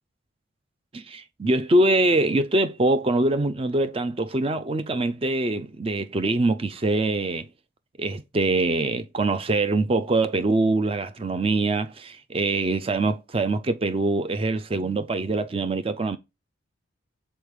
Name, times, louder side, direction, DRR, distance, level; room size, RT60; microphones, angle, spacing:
voice 1, 0.9-7.5 8.0-16.2, right 2 dB, 30° right, 0.4 m, -24 dB
5.2 x 4.4 x 4.8 m
head